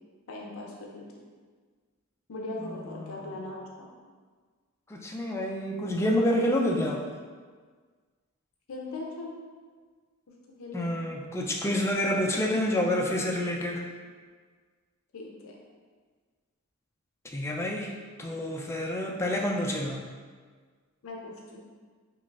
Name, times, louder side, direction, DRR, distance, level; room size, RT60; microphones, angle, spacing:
voice 1, 0.3-1.0 2.3-3.9 8.7-9.4 10.6-11.1 15.1-15.6 21.0-21.6, left 2 dB, 70° left, -1 dB, 0.5 m, -39 dB
voice 2, 3.0-3.3 4.9-7.0 10.7-13.8 17.2-20.0, left 1 dB, 10° left, 0 dB, 0.3 m, -28 dB
4.0 x 3.1 x 2.3 m, 1.5 s
head